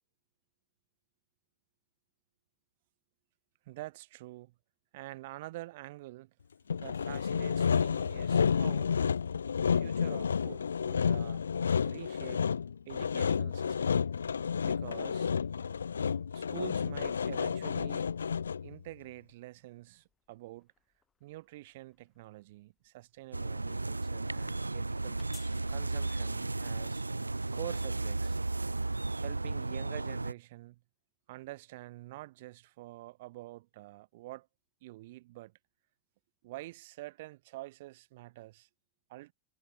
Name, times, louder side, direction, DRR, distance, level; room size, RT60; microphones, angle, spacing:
voice 1, 3.6-4.5 4.9-6.3 6.8-9.0 9.6-11.4 11.8-12.4 12.9-14.1 14.6-15.3 16.3-18.1 18.6-20.7 21.2-25.2 25.7-27.0 27.5-28.4 29.2-30.8 31.3-34.5 34.8-35.5 36.4-38.7 39.1-39.3, right 18 dB, 50° right, 1.7 m, -47 dB
Sawing, 6.7-18.8, left 6 dB, 70° left, 0.8 m, -31 dB
sound 1, 16.5-29.9, left 7 dB, 20° left, 5.8 m, -66 dB
sound 2, 23.3-30.3, right 2 dB, 80° right, 1.2 m, -34 dB
figure-of-eight pair, 90°, 0 cm